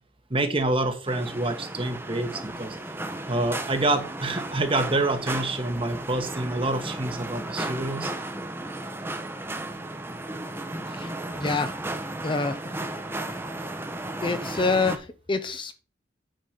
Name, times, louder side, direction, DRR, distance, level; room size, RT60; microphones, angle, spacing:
voice 1, 0.3-2.8 3.3-8.1, right 2 dB, 30° right, 7 dB, 1.2 m, -27 dB
sound 1, 1.1-15.0, right 2 dB, 10° right, 0.8 m, -34 dB
voice 2, 10.9-11.7 12.2-12.6 14.2-15.7, left 3 dB, 25° left, 10 dB, 0.5 m, -27 dB
9.0 x 4.0 x 6.4 m, 0.36 s
head